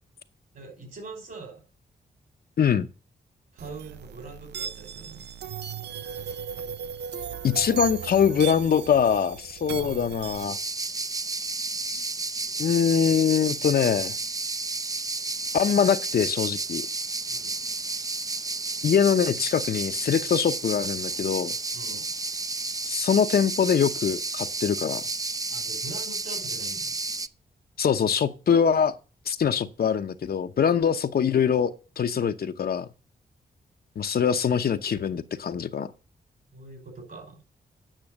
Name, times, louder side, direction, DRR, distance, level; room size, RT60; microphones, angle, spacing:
voice 1, 0.5-1.6 3.5-5.3 17.3-17.6 21.7-22.1 25.5-27.0 36.5-37.4, right 3 dB, 60° right, 4.7 m, -43 dB
sound 1, 3.6-10.4, right 8 dB, 90° right, 0.6 m, -36 dB
voice 2, 7.4-10.6 11.8-12.0 12.6-14.1 15.5-16.9 18.8-21.5 22.9-25.0 27.8-29.0 29.3-32.9 34.0-35.9, left 7 dB, 65° left, 0.8 m, -23 dB
sound 2, 10.3-27.3, right 3 dB, 20° right, 0.5 m, -31 dB
8.9 x 6.0 x 7.8 m
cardioid pair, 80°, 17 cm